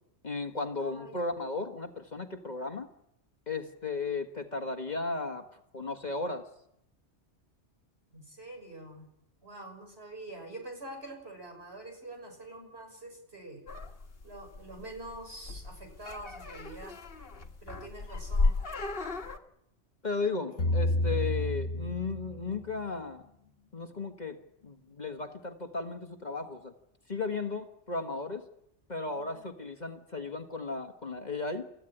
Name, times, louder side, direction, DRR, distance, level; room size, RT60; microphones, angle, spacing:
voice 1, 0.2-2.9 3.5-5.5 5.7-6.5 20.0-23.2 23.7-24.4 24.6-26.7 27.1-28.5 28.9-31.6, left 3 dB, 40° left, 6 dB, 1.6 m, -35 dB
voice 2, 0.8-1.3 8.1-9.1 9.4-13.7 14.2-17.0 17.6-18.6 20.5-20.8 29.0-29.4, right 2 dB, 60° right, 4 dB, 6.4 m, -46 dB
sound 1, 13.7-19.4, left 3 dB, 55° left, 1.8 m, -34 dB
sound 2, 20.6-22.8, left 1 dB, 80° left, 1.7 m, -30 dB
28.0 x 14.5 x 10.0 m, 0.81 s
omnidirectional pair, 1.2 m